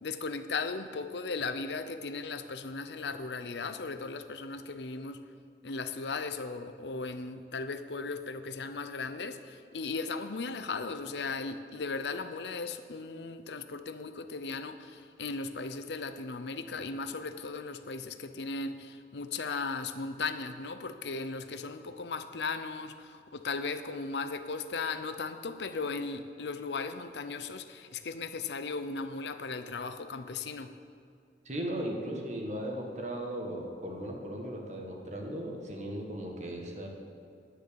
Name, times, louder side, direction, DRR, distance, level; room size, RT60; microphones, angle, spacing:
voice 1, 0.0-5.2 5.6-30.7, left 4 dB, 80° left, 10 dB, 0.7 m, -37 dB
voice 2, 31.4-36.9, right 1 dB, 40° right, 1 dB, 1.6 m, -37 dB
10.0 x 9.4 x 6.9 m, 2.4 s
head